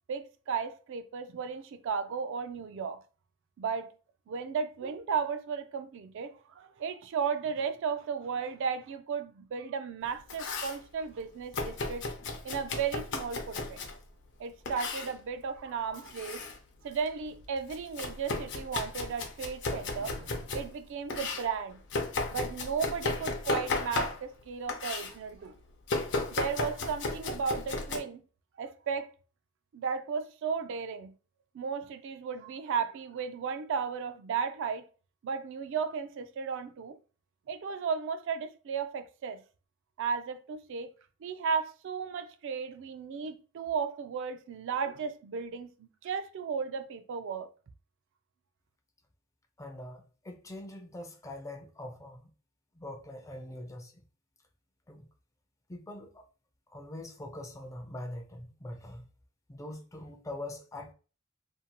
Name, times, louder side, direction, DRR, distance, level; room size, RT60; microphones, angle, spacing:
voice 1, 0.1-3.0 3.6-3.9 4.3-12.0 12.4-13.8 14.4-16.4 16.8-21.8 22.3-25.5 26.3-28.2 28.6-29.1 29.7-31.1 31.5-34.9 35.2-37.0 37.5-39.4 40.0-40.9 41.2-47.5, right 6 dB, 65° right, 0.3 m, -35 dB
Domestic sounds home sounds, 10.0-10.8 11.5-14.0 14.7-15.1 15.9-16.6 16.9-20.7 21.1-24.4 24.7-25.1 25.9-28.0, left 3 dB, 60° left, 0.6 m, -34 dB
voice 2, 49.6-52.3 52.8-54.0 54.9-55.1 55.7-56.2 56.7-59.0 59.5-60.9, left 1 dB, 15° left, 0.4 m, -43 dB
2.6 x 2.1 x 2.8 m
head